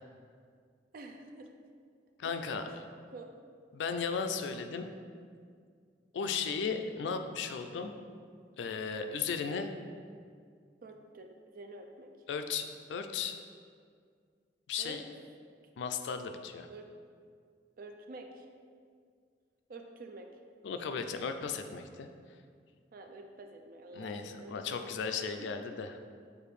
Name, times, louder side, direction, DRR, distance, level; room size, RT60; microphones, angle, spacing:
voice 1, 0.9-1.5 2.2-2.4 2.7-2.8 3.1-3.3 7.0-7.2 10.8-12.1 14.8-15.0 16.7-16.9 17.8-18.5 19.7-20.3 22.9-25.1 25.4-25.5, right 2 dB, 55° right, 4 dB, 0.4 m, -48 dB
voice 2, 2.2-2.9 3.7-4.9 6.1-7.9 8.6-9.7 12.3-13.4 14.7-15.0 15.8-16.7 20.6-22.1 23.9-26.0, left 5 dB, 80° left, 7 dB, 0.3 m, -36 dB
6.7 x 2.5 x 3.2 m, 2.1 s
head